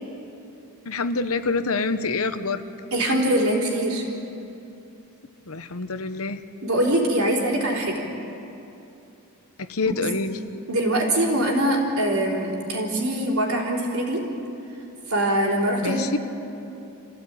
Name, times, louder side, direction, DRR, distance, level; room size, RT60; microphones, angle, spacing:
voice 1, 0.9-2.6 5.5-6.4 9.6-10.4 15.8-16.2, left 3 dB, 75° left, 10 dB, 1.0 m, -26 dB
voice 2, 2.9-4.1 6.6-8.1 9.9-10.0 10.7-14.3 15.1-16.1, right 1 dB, 75° right, -1 dB, 4.0 m, -23 dB
26.5 x 16.0 x 9.0 m, 2.8 s
head